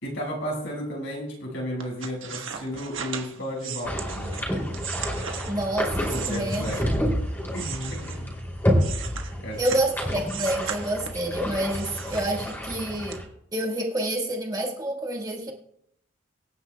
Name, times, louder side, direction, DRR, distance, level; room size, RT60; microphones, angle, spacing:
voice 1, 0.0-4.4 6.1-6.8 7.5-8.3 9.4-9.6, equal, 70° left, -2 dB, 5.7 m, -33 dB
sound 1, 1.8-7.1 7.5-9.9 10.3-11.3 11.7-12.7 13.1-13.2, right 7 dB, 75° right, 1.3 m, -37 dB
sound 2, 3.8-13.2, equal, 10° left, 2.8 m, -29 dB
voice 2, 5.5-6.7 9.6-13.2 13.5-15.5, right 1 dB, 20° right, 1 dB, 1.5 m, -28 dB
24.0 x 9.9 x 2.3 m, 0.72 s
head